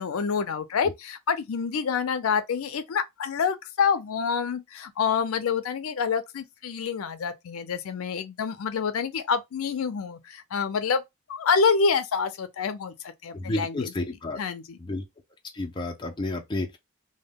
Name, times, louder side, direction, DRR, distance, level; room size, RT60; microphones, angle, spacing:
voice 1, 0.0-11.0 11.3-13.9 14.4-14.8, left 6 dB, 80° left, 0.4 m, -27 dB
voice 2, 13.3-14.4 14.8-15.0 15.5-16.8, left 2 dB, 20° left, 0.4 m, -31 dB
2.1 x 2.1 x 3.4 m
head